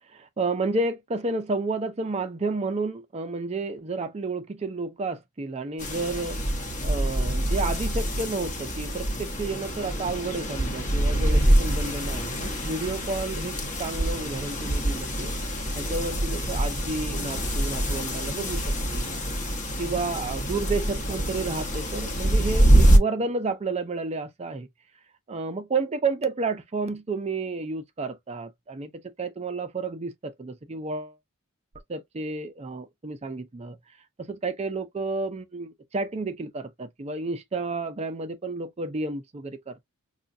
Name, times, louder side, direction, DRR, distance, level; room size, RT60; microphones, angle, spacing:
voice 1, 0.1-6.4 6.8-18.6 18.9-19.1 19.8-24.7 25.3-28.9 29.2-31.2 31.9-33.8 34.2-39.8, right 3 dB, 30° right, 0.4 m, -31 dB
sound 1, 5.8-23.0, right 1 dB, 35° left, 0.9 m, -25 dB
4.8 x 2.2 x 2.6 m
head